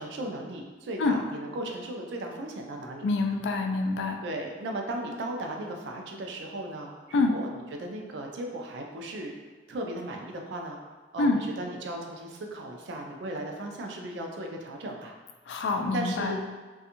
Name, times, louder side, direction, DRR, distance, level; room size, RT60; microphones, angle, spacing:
voice 1, 0.0-3.0 4.2-7.5 7.8-9.4 9.7-10.8 11.1-15.1 15.9-16.4, right 1 dB, 75° right, 2 dB, 0.4 m, -36 dB
voice 2, 3.0-4.2 7.1-7.3 11.2-11.4 15.5-16.4, left 3 dB, 75° left, 4 dB, 0.3 m, -26 dB
2.5 x 2.3 x 2.8 m, 1.3 s
head